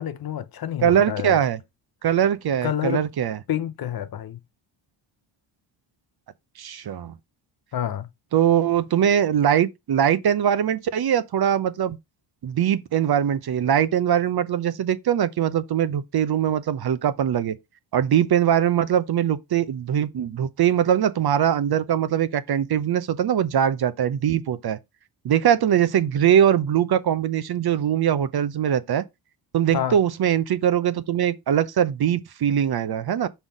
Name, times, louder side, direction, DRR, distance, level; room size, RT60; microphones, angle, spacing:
voice 1, 0.0-1.4 2.6-3.0 3.5-4.4 7.7-8.1 29.7-30.0, left 10 dB, 45° left, 0.7 m, -28 dB
voice 2, 0.8-1.6 2.0-3.4 6.6-7.1 8.3-12.0 12.4-17.6 17.9-24.8 25.2-29.0 29.5-33.3, right 9 dB, 50° right, 0.7 m, -22 dB
5.7 x 4.1 x 5.0 m
cardioid pair, 100°, 50 cm